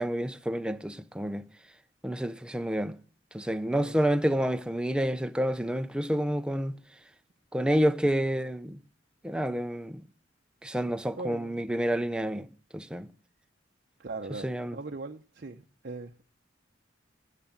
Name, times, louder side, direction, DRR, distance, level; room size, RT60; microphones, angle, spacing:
voice 1, 0.0-1.5 2.0-3.0 3.3-6.8 7.5-8.8 9.2-10.0 10.6-12.5 12.7-13.1 14.4-14.8, equal, 5° right, 0.6 m, -29 dB
voice 2, 11.2-11.6 14.0-16.2, right 3 dB, 50° right, 0.7 m, -40 dB
14.0 x 6.7 x 7.4 m
head